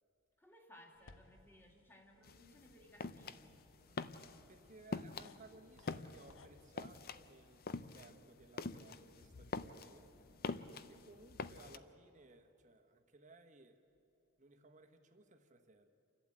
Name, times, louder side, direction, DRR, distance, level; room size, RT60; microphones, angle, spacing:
voice 1, 0.4-3.6, left 1 dB, 10° left, 2 dB, 2.2 m, -62 dB
sound 1, 1.0-6.5, left 3 dB, 60° left, 1.0 m, -66 dB
sound 2, 2.2-11.8, left 4 dB, 45° left, 0.6 m, -45 dB
voice 2, 3.7-7.7 7.9-10.3 10.7-13.8 14.4-15.9, right 2 dB, 35° right, 6 dB, 1.3 m, -61 dB
28.5 x 12.0 x 8.8 m, 3.0 s
head